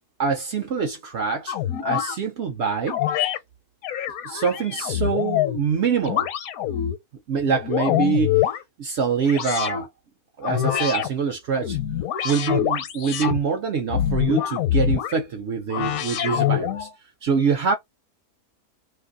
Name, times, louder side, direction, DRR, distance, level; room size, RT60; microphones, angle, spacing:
voice 1, 0.2-1.6 1.8-3.0 4.2-6.3 7.3-8.4 8.8-9.9 10.4-11.8 12.2-16.9 17.2-17.8, right 6 dB, 60° right, 0.8 m, -25 dB
sound 1, 1.5-2.2 2.9-3.4 3.8-5.6 6.1-7.0 7.4-8.6 9.3-9.9 10.4-11.1 11.5-13.4 13.9-15.1 15.7-16.9, left 10 dB, 75° left, 1.1 m, -25 dB
2.7 x 2.5 x 3.7 m
omnidirectional pair, 1.5 m